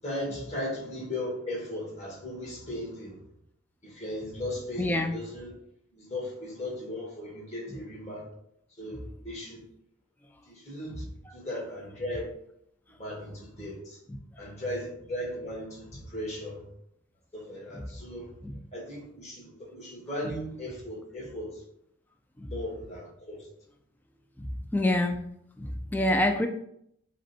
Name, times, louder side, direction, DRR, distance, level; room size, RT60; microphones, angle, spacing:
voice 1, 0.0-3.2 3.8-5.5 5.9-8.3 8.8-9.6 10.5-11.0 11.3-12.3 13.0-14.0 14.4-16.6 17.3-18.3 18.7-21.5 22.5-23.4, left 1 dB, 35° left, -3 dB, 1.6 m, -37 dB
voice 2, 4.8-5.2 7.7-7.8 11.3-11.4 14.1-14.4 17.7-17.8 18.4-18.6 20.2-20.3 22.4-22.5 24.4-25.2 25.6-26.5, left 1 dB, 10° left, 4 dB, 0.3 m, -28 dB
4.9 x 2.2 x 4.3 m, 0.73 s
head